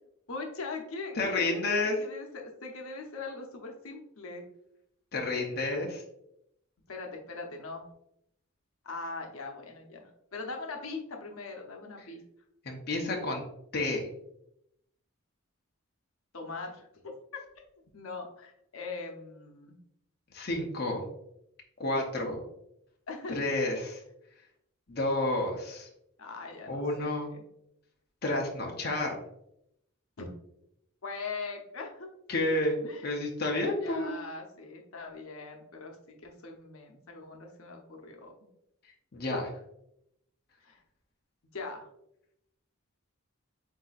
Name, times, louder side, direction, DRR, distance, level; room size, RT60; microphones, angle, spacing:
voice 1, 0.3-4.4 6.9-7.8 8.8-12.2 16.3-17.1 17.9-19.8 23.1-23.5 26.2-27.4 30.2-30.3 31.0-32.1 32.8-33.1 33.8-38.3 40.6-40.8 41.5-41.9, left 3 dB, 80° left, 2 dB, 0.8 m, -41 dB
voice 2, 1.2-1.9 5.1-6.0 12.6-13.4 13.7-14.1 20.3-21.0 21.8-22.4 23.3-24.0 24.9-25.9 26.7-27.3 28.2-29.2 32.3-32.8 33.0-34.1 39.1-39.5, left 2 dB, 45° left, 0 dB, 0.7 m, -30 dB
8.0 x 2.7 x 2.4 m, 0.79 s
head